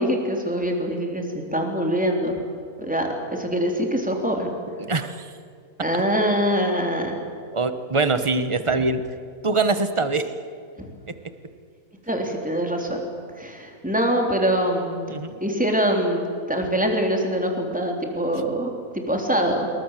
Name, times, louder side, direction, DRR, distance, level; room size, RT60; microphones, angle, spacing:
voice 1, 0.0-2.4 2.8-4.5 5.8-7.1 10.8-10.9 12.1-13.0 13.4-15.1 15.4-16.2 16.5-18.7 19.1-19.7, equal, 5° right, 2 dB, 3.6 m, -24 dB
voice 2, 4.8-5.3 7.5-9.0 9.4-10.3 15.1-15.4, right 3 dB, 20° right, 10 dB, 1.0 m, -23 dB
27.0 x 23.0 x 7.6 m, 2.3 s
omnidirectional pair, 2.1 m